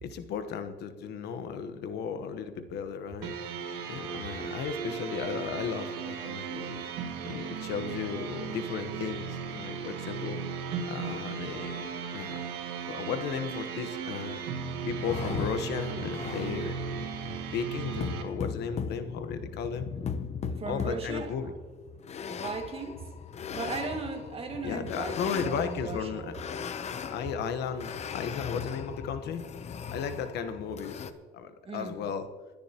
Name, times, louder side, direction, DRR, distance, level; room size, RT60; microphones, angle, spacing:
voice 1, 0.0-3.4 3.9-6.9 7.2-10.4 10.9-12.5 12.9-14.4 14.9-16.8 17.5-19.9 20.7-21.5 24.6-26.3 26.8-29.5 29.9-32.3, left 6 dB, 75° left, 9 dB, 1.1 m, -35 dB
sound 1, 3.2-18.2, right 6 dB, 85° right, 2.1 m, -36 dB
sound 2, 15.0-31.1, left 6 dB, 40° left, 0.8 m, -38 dB
voice 2, 20.5-21.6 22.3-23.1 23.5-26.3 31.7-32.0, right 4 dB, 35° right, 4 dB, 1.9 m, -37 dB
25.5 x 10.0 x 2.9 m, 1.4 s
cardioid pair, 110°, 17 cm